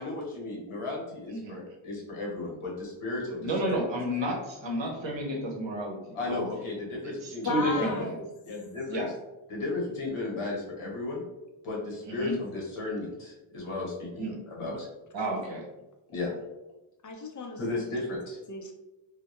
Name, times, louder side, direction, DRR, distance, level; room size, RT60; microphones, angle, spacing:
voice 1, 0.0-3.8 6.1-8.0 8.5-9.0 9.5-11.2 11.6-14.9 16.1-16.3 17.6-18.4, left 2 dB, 80° left, -2 dB, 1.0 m, -34 dB
voice 2, 3.4-6.0 6.3-6.5 7.0-8.1 8.9-9.1 12.1-12.3 14.2-14.3 15.1-15.6, right 1 dB, 60° right, -1 dB, 0.8 m, -31 dB
voice 3, 7.4-8.3 17.0-17.6 18.5-18.7, left 3 dB, 40° left, 3 dB, 0.4 m, -33 dB
2.2 x 2.1 x 2.8 m, 0.99 s
cardioid pair, 65°, 49 cm